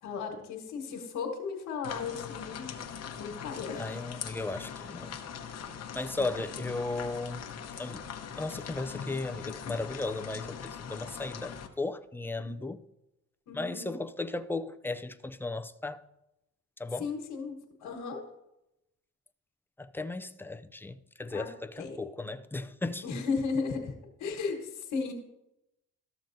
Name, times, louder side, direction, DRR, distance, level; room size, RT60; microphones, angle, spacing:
voice 1, 0.0-2.8 3.2-3.9 6.1-6.6 12.4-12.6 13.5-14.0 17.0-18.2 21.3-21.5 21.8-22.0 23.0-23.9 24.2-25.1, left 5 dB, 85° left, 1.5 m, -35 dB
sound 1, 1.8-11.7, left 7 dB, 55° left, 0.9 m, -41 dB
voice 2, 3.8-5.2 5.9-7.5 7.8-8.0 8.4-12.8 13.5-16.0 16.8-17.1 19.8-23.2, left 2 dB, 5° left, 0.4 m, -36 dB
13.5 x 6.8 x 2.6 m
cardioid pair, 90°, 30 cm